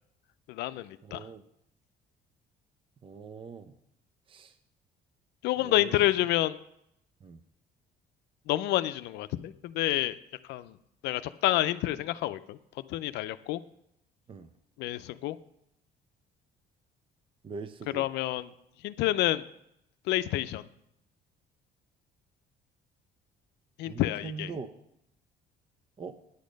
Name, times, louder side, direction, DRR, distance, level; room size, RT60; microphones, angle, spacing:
voice 1, 0.5-1.2 5.4-6.6 8.5-10.2 10.5-10.8 11.0-12.6 12.9-13.6 14.8-15.4 17.9-18.5 18.8-19.4 20.1-20.6 23.8-24.5, left 15 dB, 85° left, 13 dB, 0.5 m, -28 dB
voice 2, 1.0-1.4 3.0-3.7 4.3-4.5 5.6-6.0 7.2-7.4 14.3-14.5 17.4-18.0 23.9-24.7 26.0-26.1, right 5 dB, 30° right, 10 dB, 0.6 m, -42 dB
9.7 x 8.5 x 5.2 m, 0.78 s
cardioid pair, 110°, 17 cm